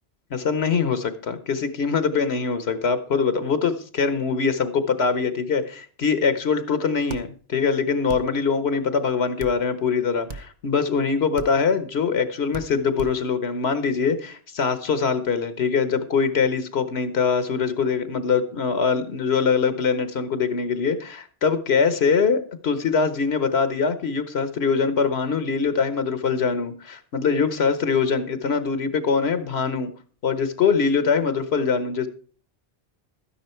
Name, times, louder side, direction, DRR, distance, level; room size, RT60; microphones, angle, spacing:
voice 1, 0.3-29.9 30.2-32.1, left 5 dB, 75° left, 12 dB, 1.3 m, -23 dB
sound 1, 7.1-7.2 8.1-8.2 9.4-9.5 10.3-10.5 11.4-11.5 12.5-12.7 13.0-13.1, right 4 dB, 50° right, 0.9 m, -34 dB
12.5 x 10.0 x 4.4 m, 0.42 s
omnidirectional pair, 1.1 m